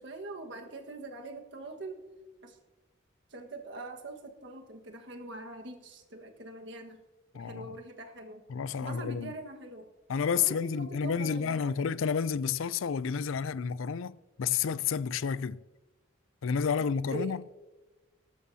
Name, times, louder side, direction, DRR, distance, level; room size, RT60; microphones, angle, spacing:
voice 1, 0.0-2.1 2.4-2.6 3.3-7.0 7.3-8.4 8.8-9.9 10.4-11.8 17.1-17.3, right 2 dB, 65° right, 1.6 m, -43 dB
voice 2, 7.3-7.8 8.5-9.3 10.1-15.6 16.4-17.4, left 6 dB, 90° left, 0.4 m, -30 dB
18.0 x 13.0 x 2.8 m
head